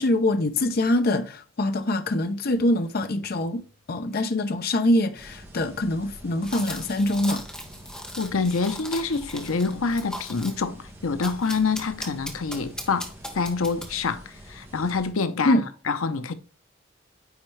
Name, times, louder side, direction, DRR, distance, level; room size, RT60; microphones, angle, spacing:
voice 1, 0.0-3.6 3.9-7.5 15.4-15.7, left 1 dB, 45° left, 0.6 m, -24 dB
sound 1, 5.1-15.1, equal, 10° right, 1.6 m, -46 dB
sound 2, 6.4-10.6 11.2-14.1, equal, 5° left, 1.3 m, -38 dB
voice 2, 8.2-16.3, left 4 dB, 85° left, 0.7 m, -26 dB
9.6 x 4.2 x 3.2 m
head